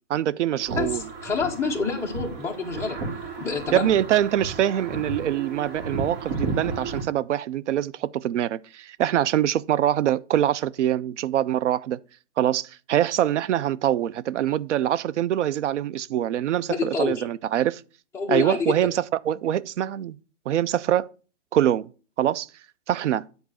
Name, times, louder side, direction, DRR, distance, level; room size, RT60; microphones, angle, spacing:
voice 1, 0.1-1.0 3.7-12.0 12.4-17.8 18.3-20.2 20.5-21.1 21.5-21.9 22.2-22.5 22.9-23.2, right 11 dB, 70° right, 0.6 m, -24 dB
sound 1, 0.6-7.0, right 3 dB, 50° right, 2.7 m, -33 dB
voice 2, 0.7-3.0 3.4-3.9 16.7-17.2 18.1-18.9, left 4 dB, 5° left, 0.8 m, -27 dB
9.6 x 4.0 x 6.1 m
hypercardioid pair, 150°, 38 cm